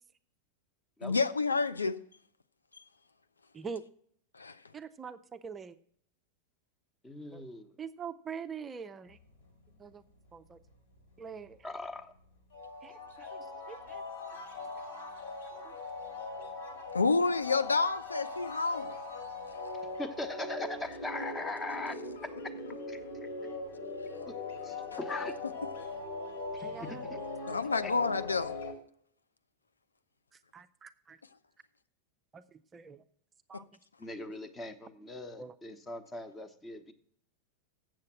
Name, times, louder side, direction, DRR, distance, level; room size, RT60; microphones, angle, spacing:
voice 1, 1.0-2.0 4.3-4.6 16.9-19.0 27.5-28.5 33.5-33.6, left 4 dB, 75° left, 0.4 m, -29 dB
voice 2, 4.7-5.8 7.3-7.4 7.8-9.2 9.8-10.0 10.3-10.6 11.2-11.6 12.8-14.0 14.3-14.5 14.8-15.0 15.6-15.8 26.6-27.1 30.3-31.2 32.3-33.0 33.5-33.7 35.4-35.5, right 6 dB, 20° right, 0.5 m, -44 dB
voice 3, 7.0-7.8 11.6-12.1 20.0-22.5 22.9-23.5 24.3-24.4 24.6-25.4 26.5-27.2 27.8-27.9 34.0-36.9, left 2 dB, 15° left, 1.0 m, -40 dB
sound 1, 9.1-10.2 10.5-11.8 12.2-12.3 12.5-28.7, left 3 dB, 60° left, 2.1 m, -41 dB
7.6 x 7.5 x 5.9 m
figure-of-eight pair, 90°, 0 cm